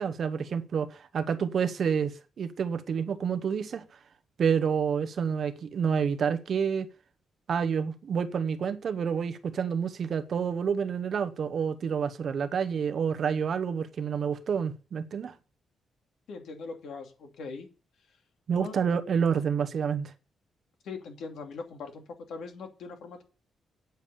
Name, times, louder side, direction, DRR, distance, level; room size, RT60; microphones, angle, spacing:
voice 1, 0.0-3.8 4.4-6.9 7.5-15.4 18.5-20.1, right 7 dB, 45° right, 0.9 m, -28 dB
voice 2, 16.3-17.7 18.6-18.8 20.8-23.2, left 4 dB, 70° left, 2.6 m, -41 dB
9.1 x 7.1 x 6.8 m
wide cardioid pair, 175°, 0 cm